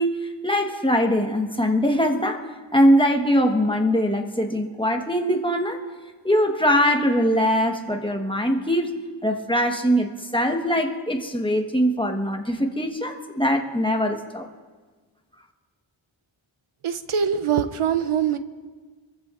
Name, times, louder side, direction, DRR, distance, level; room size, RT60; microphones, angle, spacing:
voice 1, 0.0-2.5 2.7-5.8 6.2-8.9 9.2-14.5, equal, 10° left, 3 dB, 1.2 m, -22 dB
voice 2, 16.8-18.4, right 8 dB, 90° right, 11 dB, 0.8 m, -23 dB
25.5 x 15.0 x 2.5 m, 1.4 s
wide cardioid pair, 80°, 49 cm